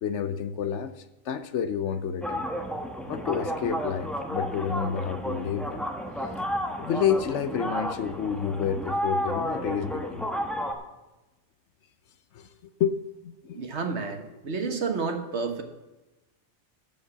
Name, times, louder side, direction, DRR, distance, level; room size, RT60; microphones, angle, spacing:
voice 1, 0.0-2.4 3.1-5.8 6.2-6.3 6.8-10.3 12.3-13.6, left 7 dB, 65° left, 11 dB, 0.8 m, -30 dB
sound 1, 2.2-10.7, equal, ahead, 1.0 m, -32 dB
voice 2, 13.5-15.6, right 4 dB, 55° right, 5 dB, 1.6 m, -30 dB
13.5 x 5.4 x 7.2 m, 1.1 s
omnidirectional pair, 1.4 m